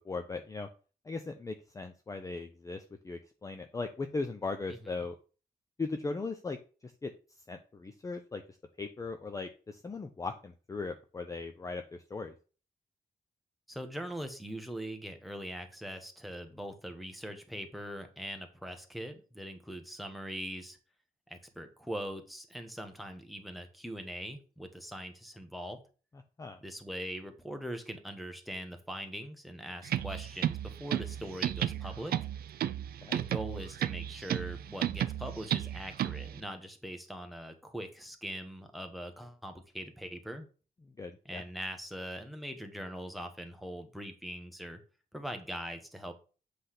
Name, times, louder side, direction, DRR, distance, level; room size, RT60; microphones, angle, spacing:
voice 1, 0.1-0.7 1.1-5.2 5.8-7.1 7.5-8.4 8.8-12.3 26.4-26.6 33.0-33.2 41.0-41.4, left 3 dB, 20° left, 6 dB, 0.5 m, -38 dB
voice 2, 13.7-20.8 21.3-25.8 26.6-32.2 33.1-40.5 41.2-44.8 45.1-46.1, equal, ahead, 6 dB, 1.0 m, -42 dB
sound 1, 29.8-36.4, right 11 dB, 80° right, 0.4 m, -34 dB
7.9 x 3.3 x 5.7 m, 0.36 s
wide cardioid pair, 160°, 15 cm